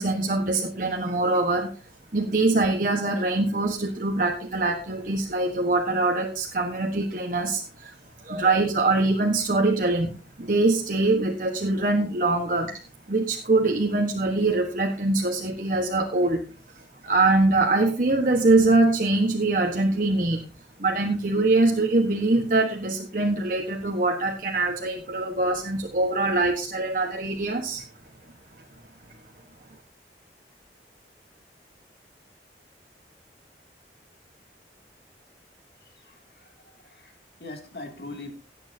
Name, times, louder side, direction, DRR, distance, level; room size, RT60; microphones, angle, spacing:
voice 1, 0.0-1.7 2.1-7.9 8.2-10.1 10.4-12.8 13.1-16.4 17.0-20.4 20.8-27.8, right 2 dB, 50° right, 2 dB, 1.3 m, -23 dB
voice 2, 35.8-38.3, left 2 dB, 65° left, 3 dB, 2.6 m, -42 dB
17.5 x 8.9 x 2.8 m, 0.38 s
head